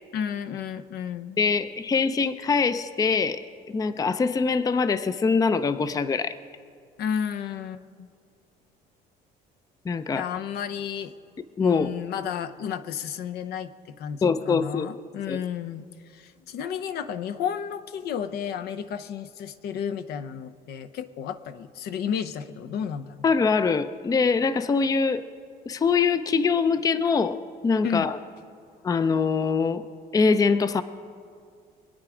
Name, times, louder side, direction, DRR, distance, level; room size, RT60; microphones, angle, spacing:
voice 1, 0.1-1.4 7.0-8.1 10.1-11.1 11.6-23.3 27.8-28.1, left 8 dB, 70° left, 11 dB, 0.7 m, -32 dB
voice 2, 1.4-3.4 3.7-6.4 9.9-10.3 11.6-11.9 14.2-14.9 15.3-15.4 23.2-25.3 25.7-27.4 27.6-28.2 28.8-29.9 30.1-30.8, left 5 dB, 20° left, 13 dB, 0.5 m, -23 dB
24.0 x 8.9 x 4.9 m, 2.2 s
cardioid pair, 110°, 17 cm